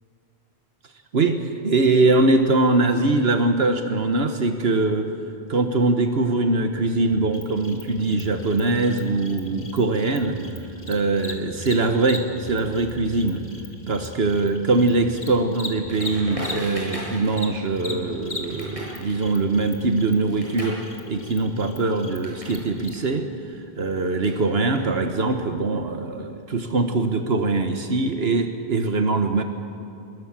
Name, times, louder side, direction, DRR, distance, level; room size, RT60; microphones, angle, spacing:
voice 1, 1.1-5.1 5.5-13.4 13.9-20.8 21.1-29.4, right 3 dB, 75° right, 6 dB, 1.5 m, -22 dB
sound 1, 7.2-7.3 7.6-7.7 8.0-8.4 8.7-9.9 10.2-10.7 10.9-11.7 12.0-15.2 15.5-18.2 18.5-18.9 19.2-19.7, right 1 dB, 60° right, 5.2 m, -41 dB
Cricket, 7.3-17.0 17.3-22.9, left 2 dB, 85° left, 2.9 m, -39 dB
Crackle, 15.9-22.6 22.9-25.3, equal, 30° right, 7.9 m, -39 dB
25.5 x 21.5 x 7.5 m, 2.7 s
omnidirectional pair, 1.1 m